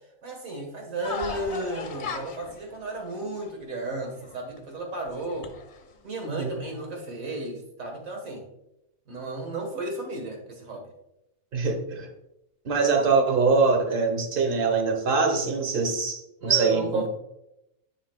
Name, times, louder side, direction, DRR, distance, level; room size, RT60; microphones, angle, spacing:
voice 1, 0.2-5.5 6.0-8.4 9.1-10.9 16.4-17.1, right 2 dB, 75° right, 2 dB, 1.9 m, -33 dB
sound 1, 1.0-4.6 5.1-5.9, left 5 dB, 55° left, 1.1 m, -37 dB
voice 2, 6.2-6.6 11.5-12.1 12.6-17.1, right 4 dB, 45° right, 4 dB, 1.1 m, -23 dB
10.5 x 5.0 x 2.3 m, 0.85 s
omnidirectional pair, 1.4 m